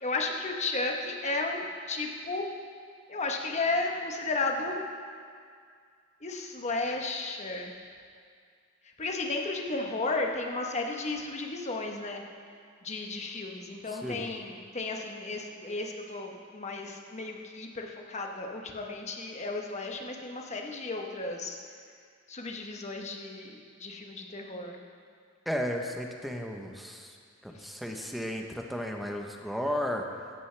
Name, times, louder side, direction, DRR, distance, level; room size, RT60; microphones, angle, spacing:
voice 1, 0.0-1.6 1.9-2.4 3.1-4.8 6.2-7.7 9.0-12.2 12.8-21.6 22.3-24.8, left 3 dB, 35° left, 2 dB, 1.1 m, -33 dB
voice 2, 13.9-14.3 25.5-27.1 27.4-30.1, equal, ahead, 2 dB, 0.8 m, -34 dB
15.5 x 11.5 x 3.4 m, 2.1 s
head